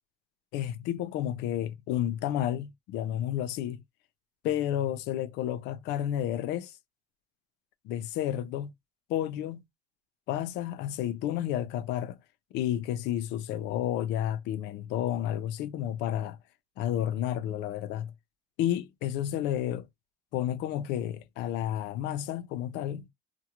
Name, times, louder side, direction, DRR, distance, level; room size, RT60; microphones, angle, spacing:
voice 1, 0.5-3.8 4.4-6.8 7.8-8.7 9.1-9.6 10.3-12.2 12.5-16.4 16.8-18.1 18.6-19.9 20.3-23.1, left 11 dB, 90° left, 0.4 m, -31 dB
2.3 x 2.1 x 2.8 m
cardioid pair, 110°, 17 cm